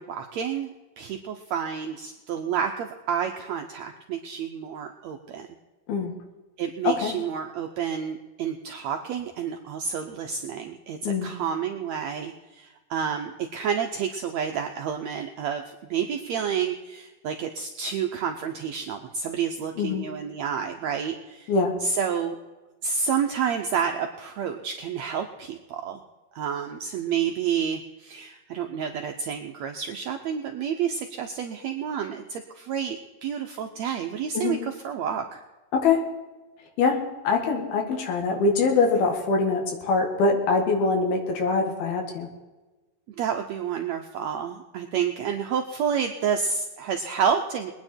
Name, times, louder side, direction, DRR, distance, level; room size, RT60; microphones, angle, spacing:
voice 1, 0.0-5.5 6.6-21.5 21.8-22.4 22.8-26.0 26.3-35.4 43.2-47.7, right 7 dB, 90° right, 4 dB, 1.5 m, -29 dB
voice 2, 19.8-20.1 21.5-21.8 34.4-34.6 35.7-36.0 36.8-37.0 37.2-42.3, left 4 dB, 90° left, 3 dB, 3.8 m, -23 dB
22.0 x 9.7 x 4.4 m, 1.2 s
omnidirectional pair, 4.2 m